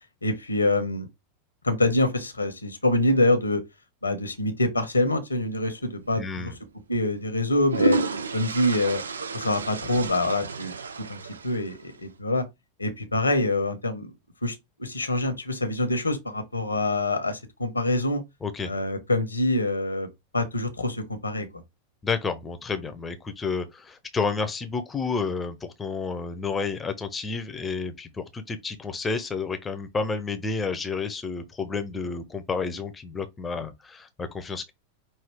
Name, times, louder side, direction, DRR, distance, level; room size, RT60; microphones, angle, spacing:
voice 1, 0.2-1.1 1.6-3.6 4.0-6.5 6.9-8.0 8.3-9.0 9.3-10.7 11.1-12.4 12.8-14.1 14.4-18.2 18.6-20.1 20.3-21.6, left 2 dB, 80° left, 1.0 m, -25 dB
sound 1, 6.0-6.2 7.3-12.0, right 3 dB, 70° right, 0.4 m, -30 dB
voice 2, 6.1-6.5 18.4-18.7 22.0-34.7, left 4 dB, 15° left, 0.8 m, -30 dB
5.5 x 2.7 x 3.5 m
figure-of-eight pair, 90°, 0 cm